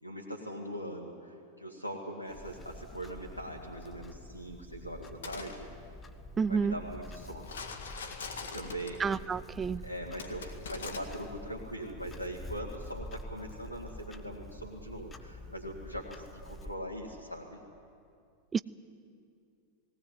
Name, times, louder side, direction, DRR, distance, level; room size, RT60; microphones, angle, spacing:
voice 1, 0.0-5.7 6.5-7.6 8.5-9.0 9.8-17.6, right 1 dB, 90° left, -2 dB, 1.9 m, -41 dB
Clock, 2.3-16.8, left 1 dB, 15° left, 1.2 m, -47 dB
sound 1, 5.1-5.6 7.4-9.1 10.2-11.0, left 5 dB, 65° left, 1.9 m, -42 dB
voice 2, 6.4-6.7 9.0-9.8 18.5-18.6, right 5 dB, 20° right, 17 dB, 0.5 m, -29 dB
18.5 x 18.0 x 9.5 m, 2.4 s
figure-of-eight pair, 90°, 0 cm